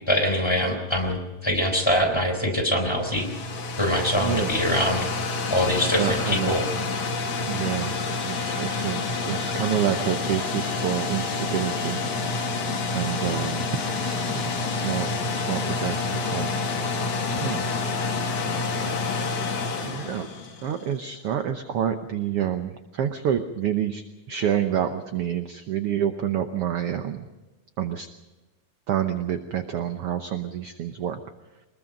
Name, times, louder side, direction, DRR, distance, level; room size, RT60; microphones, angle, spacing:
voice 1, 0.1-3.3 3.8-5.1 5.5-6.6, left 1 dB, 10° left, 3 dB, 3.6 m, -23 dB
sound 1, 2.8-20.9, left 3 dB, 60° left, 3.5 m, -28 dB
voice 2, 4.1-4.5 6.0-6.5 7.5-7.9 8.2-12.4 12.9-13.6 14.0-15.1 15.4-16.5 17.4-17.6 19.8-20.3 20.6-27.3 27.8-28.1 28.9-31.2, right 10 dB, 70° right, 7 dB, 1.4 m, -28 dB
24.0 x 21.0 x 5.3 m, 1.1 s
omnidirectional pair, 3.8 m